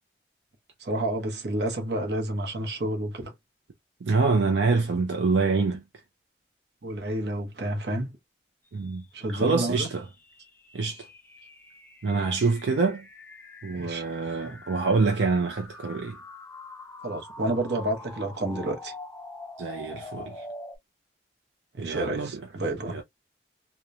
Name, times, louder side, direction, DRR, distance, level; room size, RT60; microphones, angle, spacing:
voice 1, 0.8-3.3 6.8-8.2 9.1-9.9 13.7-14.0 14.4-14.5 17.0-18.9 21.7-23.0, right 1 dB, 70° right, 0.8 m, -30 dB
voice 2, 4.0-5.8 8.7-9.0 9.3-10.1 10.7-11.1 12.0-13.1 13.6-16.2 19.6-20.4 21.8-22.4 22.8-23.0, right 4 dB, 90° right, 0.5 m, -26 dB
sound 1, 8.9-20.8, left 2 dB, 10° left, 0.3 m, -45 dB
3.0 x 2.1 x 2.3 m
head